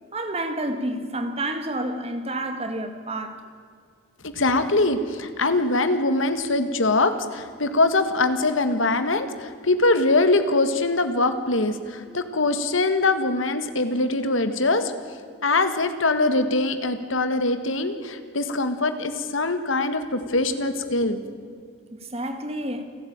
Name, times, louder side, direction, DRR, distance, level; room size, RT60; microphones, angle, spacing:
voice 1, 0.1-3.4 21.9-22.8, right 1 dB, 30° right, 1.9 m, -29 dB
voice 2, 4.2-14.9 15.4-21.2, left 2 dB, 75° left, 1.7 m, -23 dB
28.5 x 12.5 x 8.9 m
head